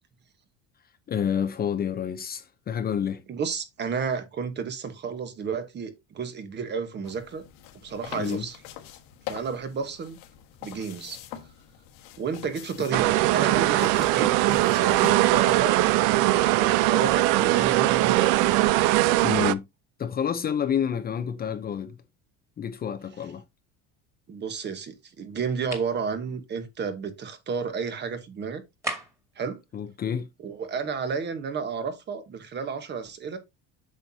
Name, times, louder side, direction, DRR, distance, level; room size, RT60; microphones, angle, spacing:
voice 1, 1.1-3.2 8.2-8.5 19.2-19.6 20.0-22.0 22.6-23.4 29.7-30.3, left 8 dB, 30° left, 0.7 m, -28 dB
voice 2, 3.3-7.4 7.8-8.6 9.3-10.2 10.6-11.2 12.2-16.2 16.6-18.4 24.3-28.6 29.4-29.6 30.4-33.4, right 6 dB, 35° right, 1.3 m, -32 dB
sound 1, 7.0-15.2, left 10 dB, 85° left, 1.7 m, -42 dB
sound 2, 12.9-19.5, right 16 dB, 75° right, 0.6 m, -21 dB
sound 3, 25.7-26.0 28.8-29.3, right 1 dB, 10° right, 2.1 m, -34 dB
8.1 x 5.8 x 2.8 m
cardioid pair, 140°, 32 cm